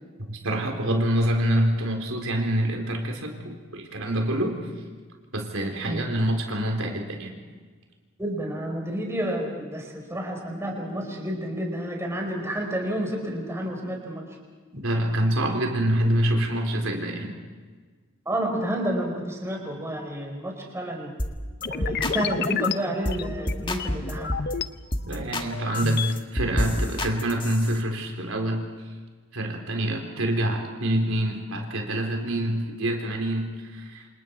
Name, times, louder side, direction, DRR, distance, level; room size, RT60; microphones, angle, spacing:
voice 1, 0.3-4.7 5.3-7.3 14.7-17.4 25.0-28.7 29.3-34.1, right 1 dB, 75° right, 2 dB, 4.1 m, -26 dB
voice 2, 8.2-14.2 14.7-14.8 18.2-21.1 21.6-24.3, right 1 dB, 15° right, 1 dB, 4.9 m, -30 dB
sound 1, 21.2-21.4 21.6-22.2 22.4-22.7 23.0-23.2 23.5-24.5 24.9-25.5 25.7-27.8, left 1 dB, 25° left, 1.9 m, -29 dB
sound 2, 21.6-24.7 25.1-26.1, left 6 dB, 50° left, 0.8 m, -31 dB
28.5 x 28.0 x 4.8 m, 1.4 s
head